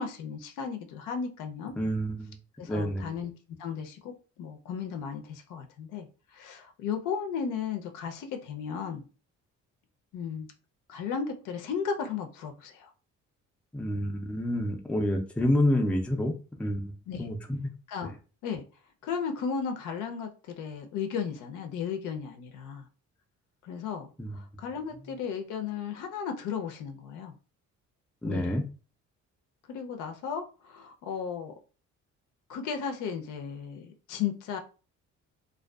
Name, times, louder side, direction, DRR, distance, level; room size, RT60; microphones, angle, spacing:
voice 1, 0.0-1.7 2.6-3.3 3.6-6.1 6.3-9.0 10.1-10.5 10.9-12.9 17.1-17.3 17.9-18.1 18.4-18.6 19.0-22.8 23.6-27.3 28.2-28.5 29.7-31.5 32.5-34.6, left 6 dB, 85° left, 5 dB, 0.5 m, -35 dB
voice 2, 1.8-2.4 2.7-3.1 13.7-16.3 16.6-16.9 17.2-17.7 24.2-24.4 28.2-28.6, equal, 5° left, 3 dB, 0.3 m, -28 dB
2.5 x 2.3 x 2.2 m, 0.35 s
cardioid pair, 90°, 30 cm